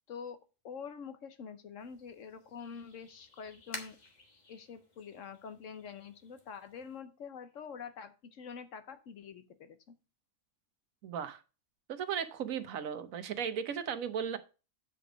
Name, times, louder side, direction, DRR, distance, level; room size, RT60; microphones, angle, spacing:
voice 1, 0.1-0.4 0.6-4.0 4.5-9.9, left 6 dB, 65° left, 10 dB, 1.1 m, -46 dB
sound 1, 1.8-7.0, left 2 dB, 35° left, 1.4 m, -52 dB
voice 2, 11.0-11.4 11.9-14.4, right 8 dB, 80° right, 11 dB, 1.3 m, -36 dB
8.2 x 5.1 x 5.0 m, 0.32 s
omnidirectional pair, 1.4 m